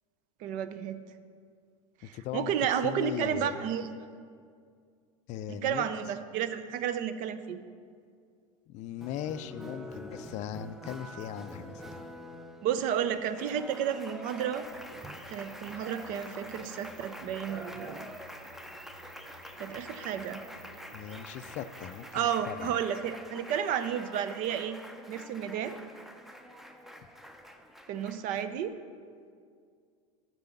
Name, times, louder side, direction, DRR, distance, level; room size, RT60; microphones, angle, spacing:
voice 1, 0.4-1.0 2.0-3.9 5.5-7.6 12.6-14.7 15.3-18.1 19.6-20.4 22.1-24.8 25.1-25.8 27.9-28.8, right 9 dB, 50° right, 12 dB, 0.5 m, -32 dB
voice 2, 2.1-2.5 2.8-3.6 5.3-5.9 8.7-12.0 20.9-22.8, left 10 dB, 45° left, 13 dB, 0.4 m, -38 dB
Applause, 9.0-28.7, equal, ahead, 0.6 m, -46 dB
sound 1, 14.6-22.1, right 1 dB, 70° right, 1.4 m, -54 dB
6.7 x 6.1 x 7.1 m, 2.2 s
hypercardioid pair, 85°, 18 cm